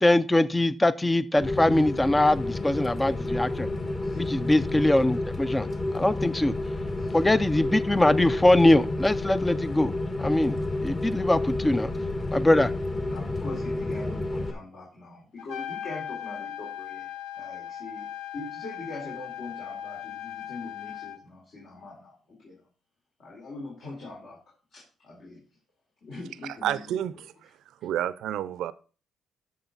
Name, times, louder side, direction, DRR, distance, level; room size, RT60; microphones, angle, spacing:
voice 1, 0.0-3.7 4.2-5.7 5.9-6.5 7.1-9.9 10.2-10.6 10.8-11.9 12.3-12.7, left 1 dB, 15° left, 16 dB, 0.4 m, -22 dB
Rain, 1.4-14.5, left 2 dB, 30° left, 1.3 m, -30 dB
voice 2, 4.0-4.5 7.0-7.2 11.9-12.4 13.0-17.1 17.4-22.7 23.2-25.4 26.0-27.2, left 2 dB, 65° left, -5 dB, 4.0 m, -43 dB
Trumpet, 15.4-21.2, left 10 dB, 90° left, 0.8 m, -38 dB
voice 3, 26.6-27.2 27.8-28.7, right 11 dB, 80° right, 17 dB, 0.5 m, -29 dB
11.5 x 6.4 x 4.0 m, 0.37 s
cardioid pair, 90°, 0 cm